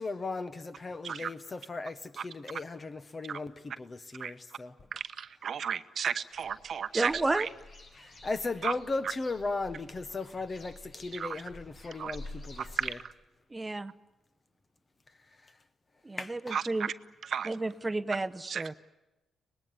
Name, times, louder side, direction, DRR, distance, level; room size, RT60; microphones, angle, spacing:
voice 1, 0.0-4.7 8.0-13.0 16.2-16.5, left 3 dB, 30° left, 1.2 m, -37 dB
voice 2, 4.9-7.5 8.6-8.7 11.1-11.4 12.0-12.2 12.8-13.1 16.5-16.9 17.3-17.5 18.5-18.6, right 7 dB, 60° right, 0.9 m, -34 dB
sound 1, 6.3-12.9, left 2 dB, 55° left, 6.1 m, -50 dB
voice 3, 6.9-7.5 13.5-13.9 16.0-16.9 17.4-18.7, right 2 dB, 15° right, 0.8 m, -31 dB
24.5 x 20.0 x 9.7 m
cardioid pair, 115°, 0 cm